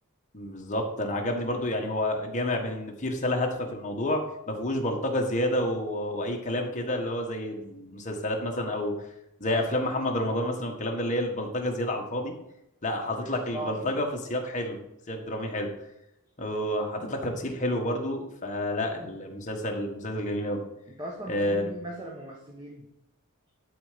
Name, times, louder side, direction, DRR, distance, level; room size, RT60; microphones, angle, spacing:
voice 1, 0.3-9.1 9.4-12.4 12.8-14.8 15.1-15.7 16.4-20.6 21.3-21.7, left 1 dB, 35° left, 1 dB, 1.5 m, -29 dB
voice 2, 13.2-13.8 20.9-22.9, right 1 dB, 20° right, -2 dB, 1.2 m, -39 dB
11.5 x 4.3 x 5.1 m, 0.83 s
head